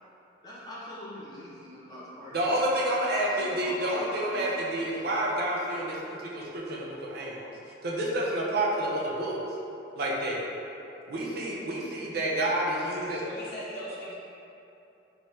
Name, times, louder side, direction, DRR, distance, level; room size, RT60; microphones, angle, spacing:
voice 1, 0.4-2.4 3.1-4.8, left 1 dB, 20° left, -10 dB, 0.8 m, -43 dB
voice 2, 2.3-6.0 6.3-7.5 7.8-9.4 10.0-10.4 11.1-13.2, right 1 dB, 55° right, -3 dB, 0.5 m, -29 dB
voice 3, 13.2-14.1, equal, 55° left, -8 dB, 0.9 m, -39 dB
3.5 x 3.1 x 2.7 m, 2.9 s
head